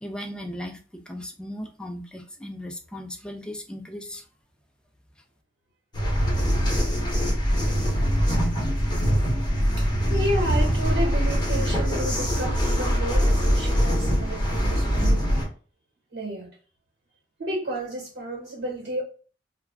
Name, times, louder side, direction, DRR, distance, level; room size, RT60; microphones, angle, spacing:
voice 1, 0.0-4.3, left 1 dB, 5° left, 3 dB, 0.3 m, -37 dB
sound 1, 5.9-15.4, equal, 25° left, 0.9 m, -23 dB
voice 2, 10.1-15.2 16.1-16.5 17.4-19.0, right 1 dB, 90° right, -2 dB, 1.1 m, -31 dB
2.3 x 2.1 x 3.3 m, 0.39 s
head